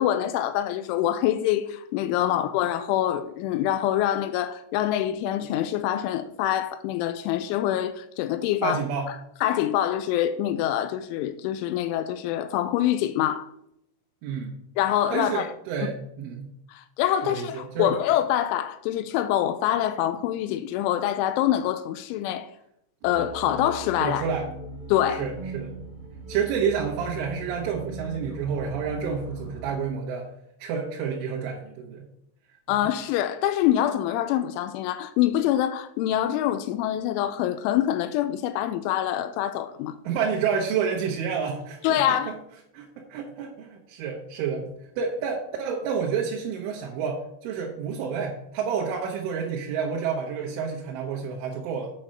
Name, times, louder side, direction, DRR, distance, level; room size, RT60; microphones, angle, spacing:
voice 1, 0.0-8.8 9.4-13.5 14.8-15.5 16.7-22.5 23.0-24.2 24.9-25.3 32.7-40.0 41.8-42.3, left 12 dB, 85° left, 3.0 m, -25 dB
voice 2, 8.6-9.1 14.2-14.5 15.1-16.5 17.2-18.0 24.0-24.5 25.1-25.7 26.3-30.3 30.6-32.1 32.7-32.8 40.1-42.3 42.7-44.7 45.0-51.9, right 6 dB, 80° right, 3.7 m, -29 dB
sound 1, 23.0-29.7, right 2 dB, 25° right, 1.0 m, -39 dB
8.6 x 5.9 x 6.5 m
omnidirectional pair, 5.5 m